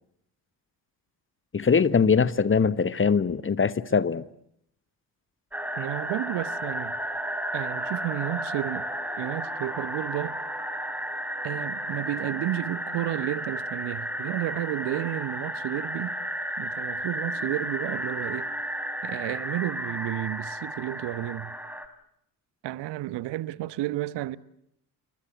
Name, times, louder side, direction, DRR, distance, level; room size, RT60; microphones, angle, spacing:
voice 1, 1.5-4.2, left 5 dB, 25° left, 1.2 m, -22 dB
sound 1, 5.5-21.9, equal, 5° right, 3.9 m, -33 dB
voice 2, 5.8-7.0 7.5-8.9 9.2-10.4 11.4-16.2 16.6-18.5 19.0-21.5 22.6-24.4, right 15 dB, 55° right, 1.2 m, -32 dB
29.0 x 23.0 x 8.0 m
figure-of-eight pair, 40°, 49 cm